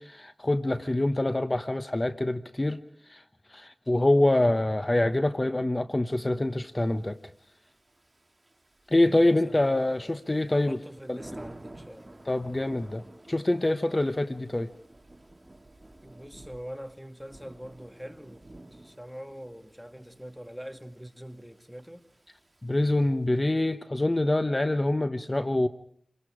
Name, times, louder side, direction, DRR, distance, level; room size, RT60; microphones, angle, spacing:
voice 1, 0.0-2.8 3.1-3.2 3.5-7.2 8.9-10.8 11.1-11.2 12.3-13.0 13.3-14.7 22.6-25.7, left 1 dB, 35° left, 1.0 m, -25 dB
Thunder / Rain, 6.9-23.4, right 1 dB, 35° right, 2.6 m, -52 dB
voice 2, 9.2-10.2 10.5-12.2 16.0-18.4 18.7-22.1, equal, ahead, 1.9 m, -44 dB
28.5 x 23.5 x 5.0 m
wide cardioid pair, 60°, 0 cm